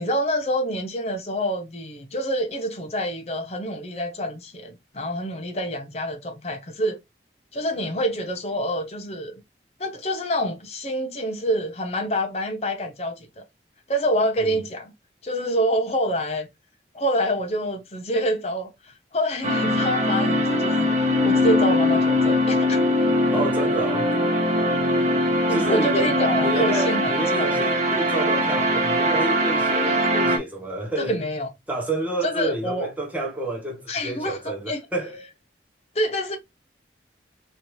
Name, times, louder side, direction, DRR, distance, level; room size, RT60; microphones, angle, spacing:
voice 1, 0.0-7.0 7.5-9.4 9.8-13.4 13.9-14.9 15.2-16.5 16.9-21.0 21.2-22.8 25.5-27.1 27.4-27.6 29.8-30.3 31.0-31.5 32.2-32.9 33.9-34.8 35.9-36.4, equal, 35° left, 0.7 m, -27 dB
sound 1, 19.4-30.4, left 1 dB, 40° right, 0.8 m, -21 dB
voice 2, 23.3-24.1 25.5-26.1 26.4-31.2 31.7-35.3, right 1 dB, 10° right, 0.9 m, -29 dB
3.1 x 2.6 x 3.0 m
head